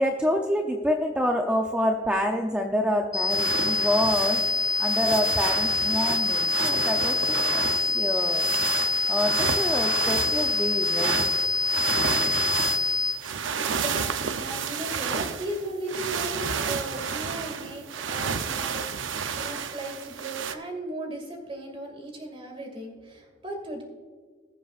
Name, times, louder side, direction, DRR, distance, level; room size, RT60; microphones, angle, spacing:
voice 1, 0.0-4.4 4.8-8.5 9.1-11.3, equal, 5° right, 2 dB, 0.6 m, -27 dB
sound 1, 3.1-13.1, left 3 dB, 20° left, 2.1 m, -25 dB
sound 2, 3.3-20.5, right 6 dB, 90° right, 0.7 m, -31 dB
voice 2, 13.6-23.8, right 1 dB, 30° right, 2 dB, 2.3 m, -37 dB
20.5 x 7.6 x 2.5 m, 1.5 s
head